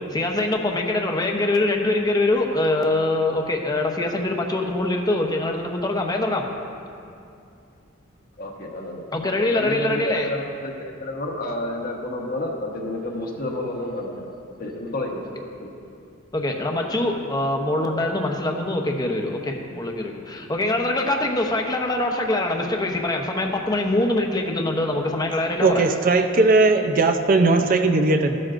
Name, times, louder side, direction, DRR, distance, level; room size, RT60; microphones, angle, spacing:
voice 1, 0.1-6.5 9.1-10.3 16.3-25.8, left 2 dB, 20° left, 2 dB, 0.8 m, -23 dB
voice 2, 8.4-14.3 14.6-15.2 15.6-15.7, left 1 dB, 45° left, 0 dB, 1.2 m, -30 dB
voice 3, 25.6-28.4, right 3 dB, 45° right, 6 dB, 0.5 m, -18 dB
14.5 x 12.0 x 2.6 m, 2.5 s
head